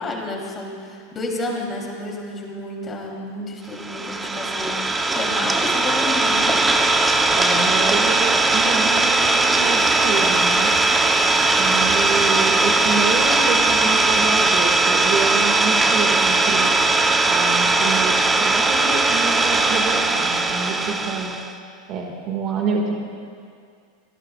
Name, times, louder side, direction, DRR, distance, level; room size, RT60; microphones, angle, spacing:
voice 1, 0.0-6.6, left 2 dB, 25° left, -2 dB, 3.3 m, -30 dB
Idling, 3.8-21.5, right 2 dB, 10° right, 0.9 m, -19 dB
voice 2, 7.3-10.7 11.6-16.7 17.2-21.3 21.9-22.9, right 5 dB, 45° right, 1 dB, 2.0 m, -27 dB
sound 1, 9.2-14.2, left 9 dB, 80° left, 1.0 m, -38 dB
25.5 x 17.5 x 2.5 m, 2.3 s
supercardioid pair, 120°, 0 cm